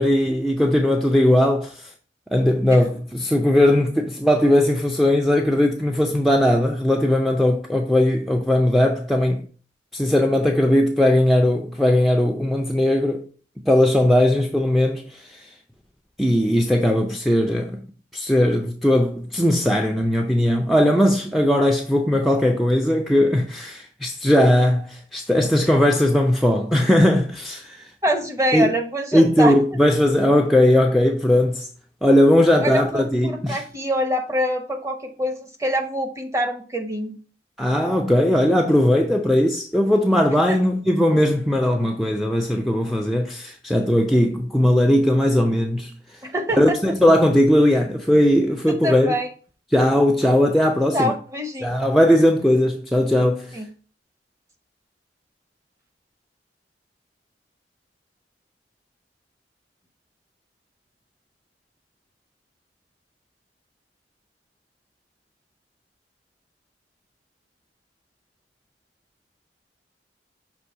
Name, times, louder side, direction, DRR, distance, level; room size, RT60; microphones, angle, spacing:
voice 1, 0.0-1.9 2.3-9.4 9.9-13.2 13.7-15.5 16.2-17.8 18.1-27.8 28.5-28.7 29.1-31.7 32.0-33.6 37.6-45.9 46.6-49.1 49.7-51.1 51.6-53.6, left 1 dB, ahead, 0.4 m, -18 dB
voice 2, 28.0-29.6 32.6-37.2 40.5-40.6 46.2-46.8 48.5-49.3 50.9-51.8 53.5-53.7, equal, 20° right, 0.9 m, -25 dB
6.2 x 3.0 x 5.5 m
head